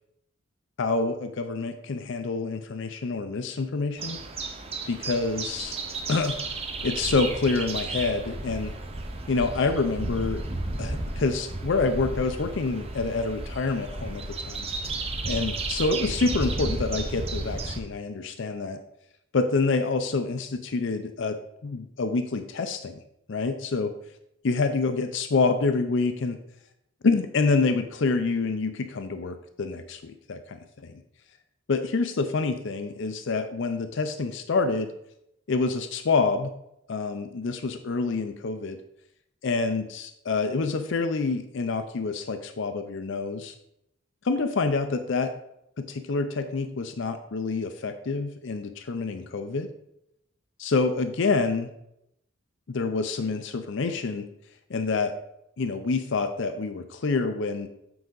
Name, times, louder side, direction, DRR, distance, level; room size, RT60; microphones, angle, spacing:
voice 1, 0.8-4.2 4.9-5.8 6.1-6.4 6.8-8.7 9.3-10.4 10.8-14.7 15.2-18.8 19.3-23.0 23.3-23.9 24.4-26.4 27.0-30.6 30.8-30.9 31.7-34.9 35.5-36.5 36.9-38.8 39.4-43.5 44.2-45.3 45.8-49.7 50.6-51.7 52.7-54.2 54.7-55.1 55.6-57.7, left 4 dB, 60° left, 8 dB, 0.5 m, -27 dB
sound 1, 4.0-17.8, right 2 dB, 30° right, 0.6 m, -33 dB
7.8 x 4.7 x 3.9 m, 0.80 s
head